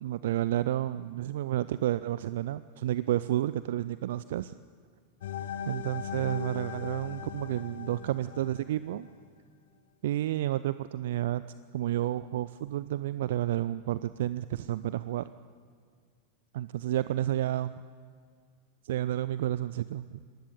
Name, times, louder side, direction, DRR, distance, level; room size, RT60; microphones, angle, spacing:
voice 1, 0.0-4.5 5.7-9.1 10.0-11.4 11.7-15.3 16.5-17.7 18.8-20.2, right 13 dB, 55° right, 16 dB, 0.5 m, -31 dB
sound 1, 5.2-9.2, left 7 dB, 60° left, 1.3 m, -39 dB
25.0 x 19.5 x 6.8 m, 2.1 s
figure-of-eight pair, 90°, 0 cm